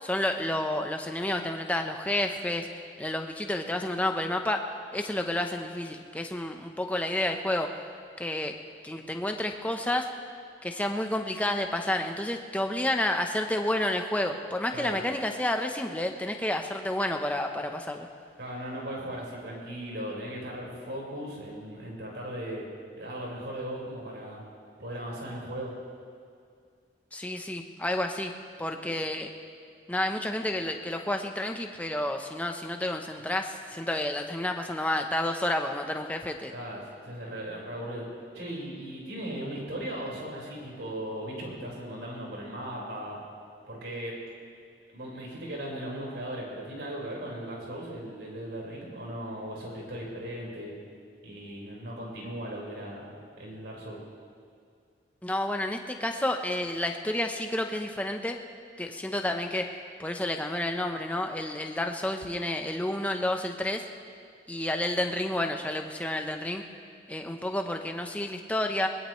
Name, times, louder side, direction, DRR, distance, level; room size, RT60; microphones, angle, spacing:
voice 1, 0.0-2.7 3.0-7.7 8.2-8.5 8.8-10.1 10.6-18.1 27.1-28.3 28.6-29.3 29.9-36.5 55.2-58.4 58.8-59.7 60.0-63.9 64.5-66.6 67.1-68.9, left 1 dB, 10° left, 4 dB, 0.9 m, -30 dB
voice 2, 18.4-22.7 23.0-24.4 24.8-25.7 36.5-38.1 38.3-43.2 43.7-44.1 44.9-50.7 51.2-53.1 53.4-54.0, right 1 dB, 80° right, -3 dB, 5.0 m, -37 dB
21.0 x 20.5 x 3.2 m, 2.3 s
head